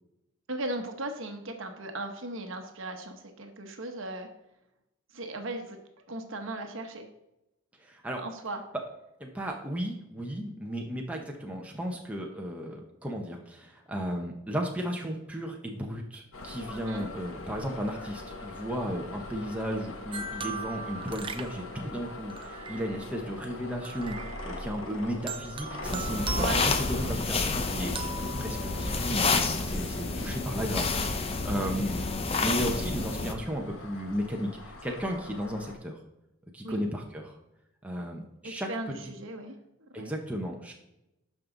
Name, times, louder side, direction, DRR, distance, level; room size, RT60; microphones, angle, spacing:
voice 1, 0.5-4.3 5.1-5.8 6.1-7.1 8.2-8.6 16.8-17.1 26.4-26.6 36.6-36.9 38.4-39.6 40.0-40.1, right 2 dB, 60° right, 5 dB, 1.1 m, -37 dB
voice 2, 7.8-8.2 9.2-27.9 28.4-32.0 32.4-36.0 36.5-37.4 37.8-38.7 39.9-40.7, equal, 5° right, 0 dB, 0.9 m, -34 dB
sound 1, 16.3-35.7, left 2 dB, 60° left, 1.2 m, -43 dB
sound 2, 20.1-23.2 23.8-24.8 25.3-27.4 28.0-29.2, right 5 dB, 25° right, 0.4 m, -40 dB
sound 3, 25.8-33.3, left 3 dB, 25° left, 0.6 m, -29 dB
12.0 x 5.4 x 3.9 m, 0.89 s
head